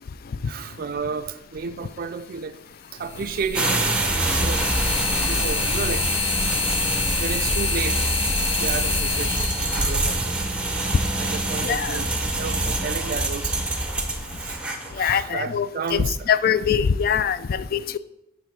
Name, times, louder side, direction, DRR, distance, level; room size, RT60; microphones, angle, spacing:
voice 1, 0.5-2.6 2.9-4.6 5.2-6.1 7.2-8.2 8.6-13.6 14.4-14.6 15.0-16.3, right 5 dB, 50° right, 0.4 m, -32 dB
sound 1, 1.5-1.6 3.0-10.9, left 4 dB, 85° left, 1.4 m, -27 dB
sound 2, 3.5-15.0, right 2 dB, 5° right, 0.7 m, -25 dB
voice 2, 11.6-12.0 15.0-18.0, left 7 dB, 50° left, 0.3 m, -23 dB
7.4 x 3.5 x 6.0 m
head